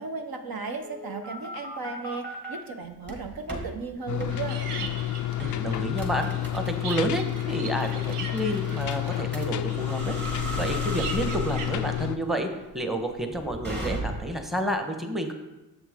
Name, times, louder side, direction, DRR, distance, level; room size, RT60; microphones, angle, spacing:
voice 1, 0.0-4.6, right 4 dB, 45° right, 5 dB, 1.1 m, -35 dB
sound 1, 0.8-2.6 3.0-3.7 4.2-4.4 4.8-5.0 5.4-14.4, right 1 dB, 20° right, 2.4 m, -36 dB
sound 2, 4.1-12.2, left 14 dB, 40° left, 0.4 m, -30 dB
sound 3, 4.3-12.1, right 5 dB, 80° right, 0.9 m, -41 dB
voice 2, 5.4-10.2 10.6-12.5 12.7-15.3, equal, ahead, 5 dB, 1.1 m, -30 dB
7.4 x 6.0 x 3.7 m, 1.0 s
hypercardioid pair, 50°, 48 cm